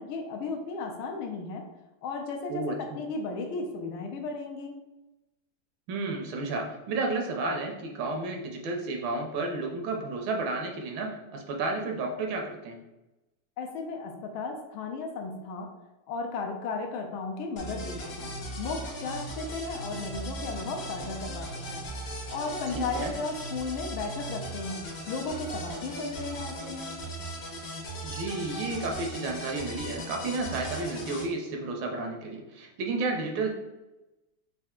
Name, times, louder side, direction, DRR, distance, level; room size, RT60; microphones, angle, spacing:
voice 1, 0.0-1.6 2.0-4.8 13.6-15.7 16.1-18.3 18.6-21.9 22.3-26.9, left 4 dB, 80° left, 3 dB, 1.4 m, -35 dB
voice 2, 5.9-12.8 22.7-23.1 28.0-33.5, right 3 dB, 75° right, 1 dB, 1.2 m, -32 dB
sound 1, 17.6-31.3, right 1 dB, 60° left, 1.4 m, -38 dB
4.4 x 2.5 x 3.6 m, 0.99 s
omnidirectional pair, 2.3 m